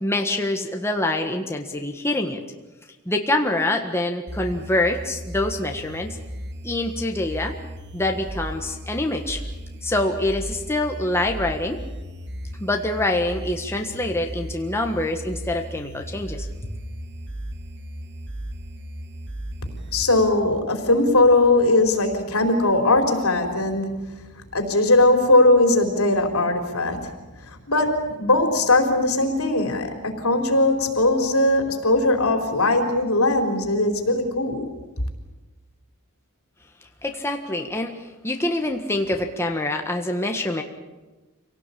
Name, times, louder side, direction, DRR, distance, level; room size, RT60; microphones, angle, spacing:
voice 1, 0.0-2.4 3.0-6.2 6.6-7.5 7.9-9.4 9.8-11.8 12.6-16.5 37.0-40.6, left 1 dB, 10° left, 3 dB, 1.5 m, -25 dB
sound 1, 4.3-20.3, equal, 55° right, 2.2 m, -36 dB
voice 2, 19.9-27.1 27.5-34.7, left 2 dB, 70° left, 5 dB, 4.2 m, -20 dB
26.0 x 18.0 x 8.6 m, 1.2 s
head